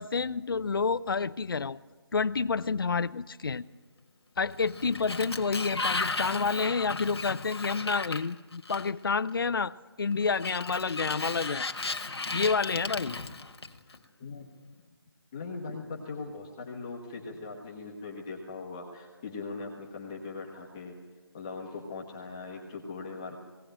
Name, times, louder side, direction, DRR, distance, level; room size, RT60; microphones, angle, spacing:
voice 1, 0.0-1.8 2.1-3.6 4.4-11.7 12.3-13.2, left 5 dB, 60° left, 14 dB, 0.5 m, -29 dB
Sliding door, 4.5-9.1 10.3-14.0, left 3 dB, 85° left, 1.5 m, -35 dB
voice 2, 13.9-14.4 15.3-20.9 21.3-23.4, left 4 dB, 10° left, -1 dB, 1.1 m, -40 dB
19.5 x 17.0 x 8.9 m, 1.4 s
hypercardioid pair, 175°, 13 cm